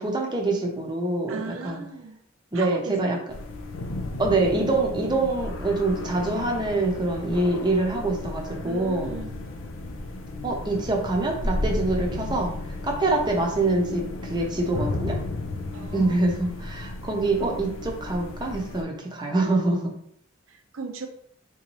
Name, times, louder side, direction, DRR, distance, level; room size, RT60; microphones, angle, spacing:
voice 1, 0.0-1.8 2.5-3.2 4.2-9.1 10.4-12.5 12.8-15.2 15.9-19.9, right 2 dB, 25° right, 0 dB, 0.7 m, -25 dB
voice 2, 1.3-2.2 2.5-3.2 8.6-9.4 15.7-16.2 17.4-17.6 19.2-19.6 20.7-21.1, right 4 dB, 80° right, 6 dB, 0.5 m, -37 dB
sound 1, 3.3-18.8, left 2 dB, 80° left, 0.4 m, -34 dB
3.7 x 2.7 x 3.0 m, 0.66 s
head